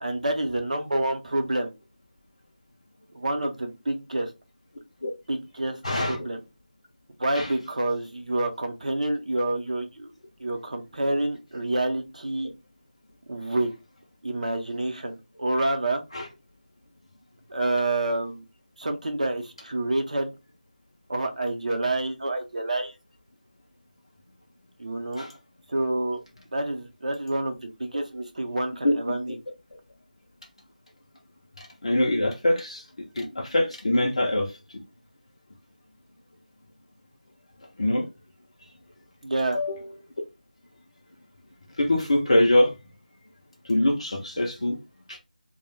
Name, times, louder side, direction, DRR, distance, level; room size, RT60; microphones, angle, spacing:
voice 1, 0.0-1.7 3.1-4.3 5.3-5.8 6.1-6.4 7.2-10.1 10.4-12.5 13.3-13.7 14.2-16.0 17.5-18.5 18.8-20.3 21.1-22.9 24.8-25.3 25.7-26.2 26.5-29.4 39.2-39.6, right 2 dB, 55° right, 0.6 m, -28 dB
voice 2, 5.8-6.2 7.3-7.5 16.1-16.3 25.2-25.4 28.8-28.9 31.6-34.6 37.8-38.1 39.5-40.0 41.8-42.7 43.6-44.8 45.1-45.2, left 1 dB, 40° left, 0.4 m, -24 dB
2.3 x 2.0 x 3.1 m
figure-of-eight pair, 175°, 5 cm